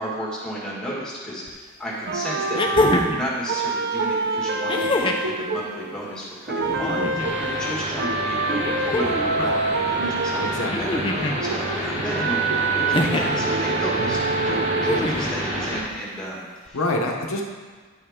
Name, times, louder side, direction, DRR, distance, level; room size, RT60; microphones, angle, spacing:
voice 1, 0.0-14.2 14.4-16.8, equal, 5° left, -6 dB, 1.7 m, -33 dB
sound 1, 1.5-1.6 2.5-3.3 4.7-5.3 6.6-7.3 8.6-9.4 10.7-11.4 12.9-13.4 14.8-15.4 16.7-16.8, left 2 dB, 20° left, 0.5 m, -24 dB
sound 2, 2.1-6.1 6.5-15.1, right 3 dB, 50° right, 0.5 m, -26 dB
sound 3, 7.2-15.8, equal, 25° right, 1.1 m, -29 dB
voice 2, 10.4-10.9 16.7-17.4, left 2 dB, 65° left, 1 dB, 0.8 m, -26 dB
10.5 x 5.5 x 3.6 m, 1.5 s
head